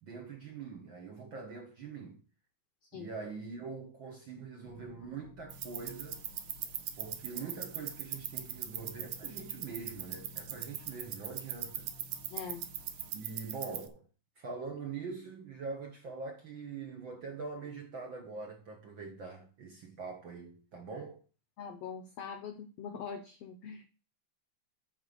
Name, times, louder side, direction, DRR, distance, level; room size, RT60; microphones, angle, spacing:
voice 1, 0.0-2.2 2.9-6.2 6.9-11.9 13.1-14.1 14.4-21.2, right 4 dB, 55° right, 1.4 m, -43 dB
sound 1, 4.6-13.1, left 3 dB, 60° left, 1.4 m, -54 dB
sound 2, 5.5-13.9, right 11 dB, 70° right, 2.3 m, -41 dB
voice 2, 12.3-12.7 21.6-23.9, left 7 dB, 80° left, 1.4 m, -43 dB
9.5 x 4.3 x 6.7 m
omnidirectional pair, 3.9 m